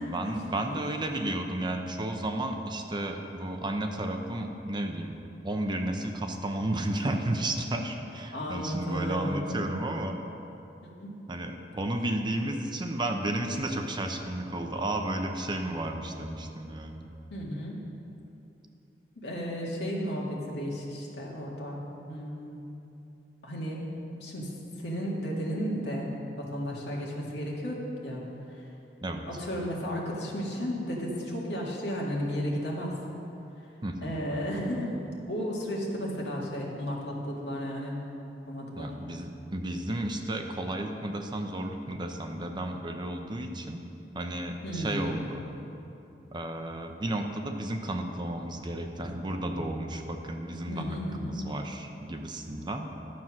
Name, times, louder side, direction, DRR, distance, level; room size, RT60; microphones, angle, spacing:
voice 1, 0.0-5.2 5.4-10.2 11.3-17.1 29.0-29.3 33.8-34.1 38.7-43.8 44.1-45.4 46.3-52.9, right 1 dB, 25° right, 4 dB, 0.7 m, -33 dB
voice 2, 8.3-9.7 10.2-10.4 11.0-11.2 17.3-17.8 19.2-21.8 22.1-22.6 23.4-23.8 24.2-24.5 24.8-26.1 26.4-28.2 28.5-28.6 29.3-32.9 34.0-34.9 35.3-38.0 38.5-38.9 44.6-45.3 50.7-51.4, equal, 65° left, -3 dB, 2.1 m, -33 dB
12.0 x 7.4 x 6.1 m, 2.9 s
head